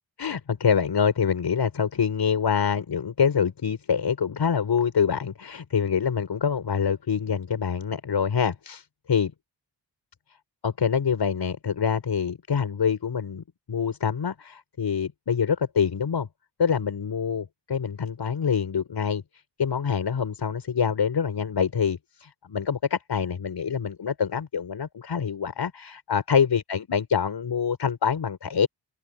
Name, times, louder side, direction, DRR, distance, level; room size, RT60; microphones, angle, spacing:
voice 1, 0.2-9.3 10.6-16.3 16.6-19.2 19.6-28.7, left 7 dB, 65° left, 6.7 m, -25 dB
open air
wide cardioid pair, 160°, 44 cm